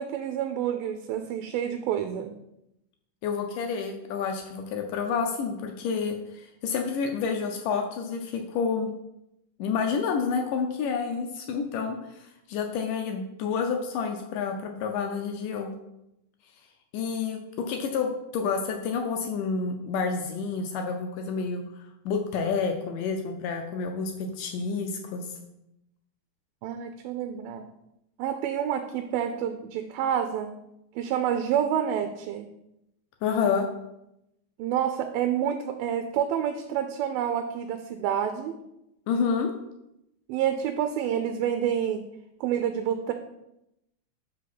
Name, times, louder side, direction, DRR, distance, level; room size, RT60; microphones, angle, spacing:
voice 1, 0.0-2.3 26.6-27.6 28.2-30.5 31.0-32.5 34.6-38.6 40.3-42.0 42.4-43.1, right 9 dB, 85° right, 7 dB, 2.4 m, -28 dB
voice 2, 3.2-8.9 9.6-15.7 16.9-25.3 33.2-33.7 39.1-39.5, left 5 dB, 75° left, 4 dB, 2.0 m, -29 dB
5.4 x 5.0 x 5.9 m, 0.85 s
omnidirectional pair, 4.2 m